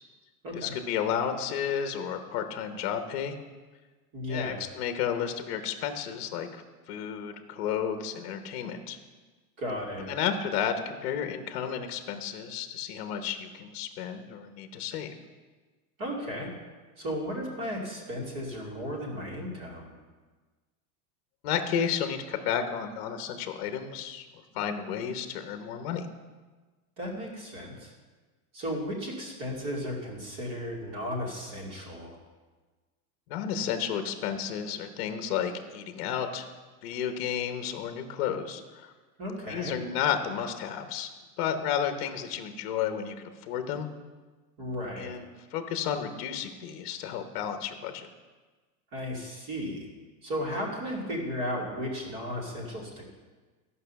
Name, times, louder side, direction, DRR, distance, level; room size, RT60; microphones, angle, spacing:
voice 1, 0.5-3.4 4.2-6.6 6.9-9.0 10.0-15.1 21.4-26.1 33.3-36.5 36.8-38.9 39.4-41.1 41.4-43.9 45.0-45.3 45.5-48.1, left 8 dB, 40° left, 8 dB, 0.9 m, -32 dB
voice 2, 4.1-4.6 9.6-10.1 16.0-16.5 17.0-19.9 27.0-27.9 28.5-32.2 39.2-39.8 44.6-45.1 48.9-49.9 50.2-53.1, equal, 40° right, -2 dB, 2.6 m, -35 dB
13.0 x 5.6 x 6.9 m, 1.3 s
supercardioid pair, 180°, 46 cm